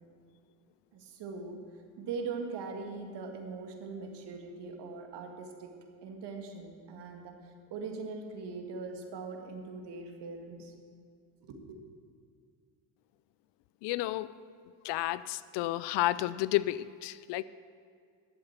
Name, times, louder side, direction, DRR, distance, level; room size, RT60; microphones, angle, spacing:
voice 1, 0.9-1.6 2.0-5.7 6.0-10.7 11.4-11.8, right 4 dB, 60° right, 4 dB, 2.0 m, -41 dB
voice 2, 13.8-14.3 14.8-17.4, left 16 dB, 65° left, 17 dB, 0.5 m, -31 dB
11.5 x 7.8 x 7.3 m, 2.1 s
supercardioid pair, 95°, 47 cm